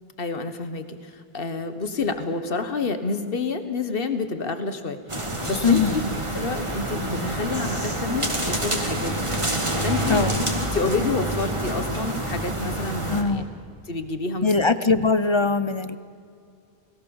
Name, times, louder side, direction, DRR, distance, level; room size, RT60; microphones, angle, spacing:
voice 1, 0.2-6.0 6.3-9.3 9.8-10.5 10.7-13.4 13.9-14.7, left 4 dB, 65° left, 10 dB, 1.6 m, -29 dB
sound 1, 5.1-13.2, right 1 dB, 30° right, 2.4 m, -27 dB
voice 2, 5.6-6.0 10.1-10.3 13.1-13.4 14.4-16.0, left 4 dB, 30° left, 13 dB, 0.6 m, -21 dB
29.5 x 18.5 x 7.2 m, 2.3 s
omnidirectional pair, 1.0 m